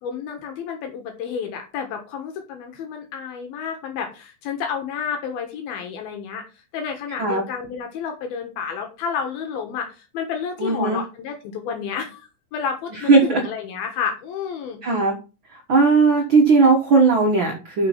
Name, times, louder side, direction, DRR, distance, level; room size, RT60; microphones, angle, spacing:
voice 1, 0.0-6.4 6.7-14.8, left 6 dB, 80° left, 4 dB, 3.2 m, -30 dB
voice 2, 10.6-11.0 13.1-13.4 14.8-15.1 15.7-17.9, right 4 dB, 55° right, 1 dB, 1.4 m, -17 dB
6.7 x 6.0 x 5.9 m, 0.32 s
omnidirectional pair, 4.2 m